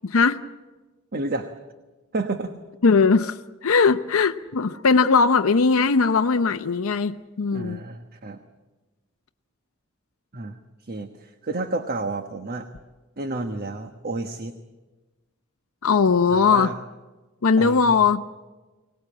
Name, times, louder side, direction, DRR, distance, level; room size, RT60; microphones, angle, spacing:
voice 1, 0.0-0.4 2.8-7.8 15.8-16.7 17.4-18.2, left 5 dB, 70° left, 8 dB, 0.7 m, -19 dB
voice 2, 1.1-1.5 2.1-2.5 7.5-8.4 10.3-12.7 13.2-14.6 16.3-16.8 17.6-18.0, right 2 dB, 45° right, 7 dB, 1.1 m, -31 dB
24.5 x 18.5 x 8.6 m, 1.2 s
head